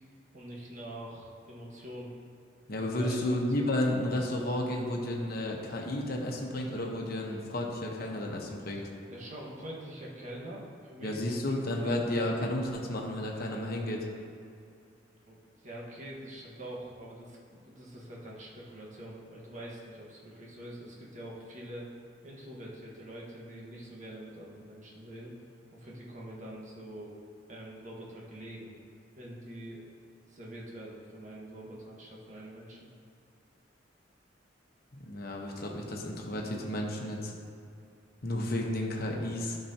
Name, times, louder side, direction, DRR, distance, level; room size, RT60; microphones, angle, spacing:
voice 1, 0.3-2.1 3.0-3.7 9.1-11.2 11.5-12.0 15.2-15.4 15.6-21.9 22.2-25.3 25.7-27.1 27.5-28.7 29.1-29.8 30.3-32.9, right 1 dB, 40° right, -4 dB, 1.5 m, -45 dB
voice 2, 2.7-8.9 11.0-14.1 34.9-37.3 38.2-39.6, left 1 dB, 55° left, 0 dB, 1.1 m, -32 dB
12.0 x 5.9 x 2.9 m, 2.5 s
head